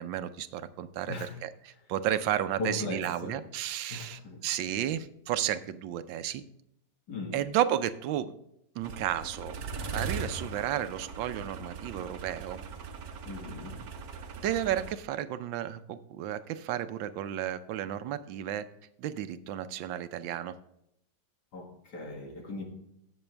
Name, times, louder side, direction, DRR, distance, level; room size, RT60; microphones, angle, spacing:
voice 1, 0.0-6.4 7.3-8.3 8.7-9.6 9.9-12.6 14.4-18.7 19.0-20.5, right 11 dB, 90° right, 12 dB, 1.4 m, -32 dB
voice 2, 1.1-1.4 2.6-3.4 3.9-4.5 7.1-7.4 13.3-13.8 21.5-22.6, left 2 dB, 60° left, 2 dB, 2.3 m, -38 dB
sound 1, 8.8-14.9, right 4 dB, 60° right, 1.3 m, -40 dB
15.5 x 7.0 x 3.3 m, 0.79 s
omnidirectional pair, 2.0 m